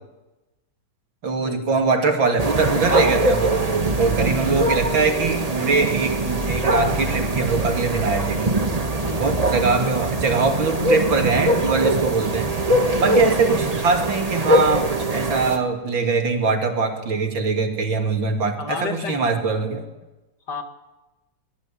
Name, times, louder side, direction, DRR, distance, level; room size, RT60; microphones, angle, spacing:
voice 1, 1.2-8.5 9.2-12.5 13.0-19.8, right 4 dB, 70° right, 3 dB, 3.5 m, -22 dB
sound 1, 2.4-15.6, right 1 dB, 20° right, 1.3 m, -22 dB
voice 2, 4.2-4.7 8.8-9.6 13.1-13.3 18.6-19.2 20.5-20.6, left 5 dB, 55° left, 5 dB, 2.6 m, -33 dB
24.0 x 19.5 x 8.6 m, 1.1 s
omnidirectional pair, 2.2 m